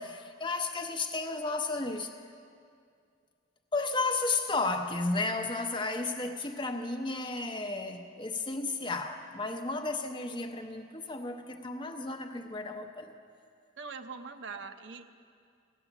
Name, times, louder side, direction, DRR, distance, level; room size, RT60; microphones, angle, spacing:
voice 1, 0.0-2.1 3.7-13.1, left 3 dB, 25° left, 0.7 m, -33 dB
voice 2, 13.8-15.1, right 5 dB, 65° right, 0.6 m, -42 dB
16.0 x 9.8 x 7.1 m
head